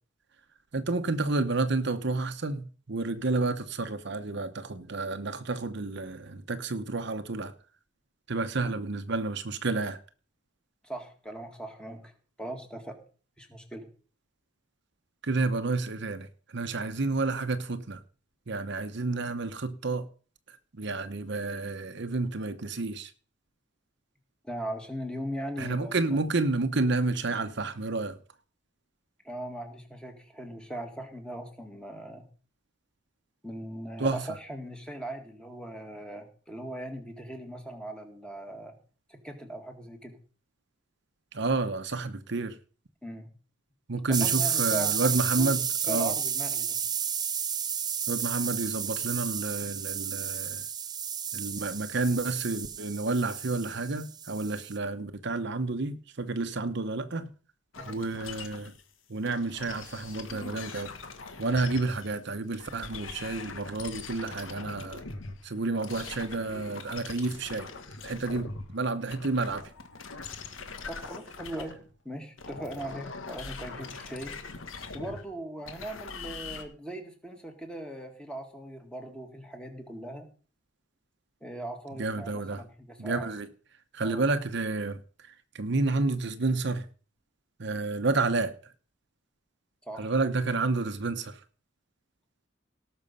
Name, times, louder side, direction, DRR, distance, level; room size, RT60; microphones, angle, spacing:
voice 1, 0.7-7.5 8.3-10.0 15.2-18.0 18.5-20.1 20.5-23.1 25.6-28.2 34.0-34.2 41.3-42.6 43.9-46.1 48.1-50.7 51.3-57.3 57.9-58.7 59.1-60.9 61.4-65.0 65.4-67.7 68.0-69.7 82.0-82.6 83.0-83.5 83.9-86.9 87.6-88.5 90.0-91.4, right 3 dB, 60° right, 0.9 m, -30 dB
voice 2, 10.8-12.1 12.4-13.0 13.4-13.9 24.4-26.2 29.2-32.3 33.4-38.8 39.1-40.2 43.0-43.3 44.2-44.9 45.4-46.8 57.8-58.0 70.9-71.8 72.0-74.4 74.9-80.3 81.4-83.3 84.0-84.3 89.8-90.1, right 1 dB, 5° left, 2.0 m, -39 dB
sound 1, 44.1-54.7, right 8 dB, 20° right, 0.6 m, -31 dB
sound 2, 57.7-58.8 59.2-62.2 62.5-68.7 69.0-71.9 72.4-76.6, left 4 dB, 85° left, 1.5 m, -42 dB
17.5 x 6.2 x 5.5 m
head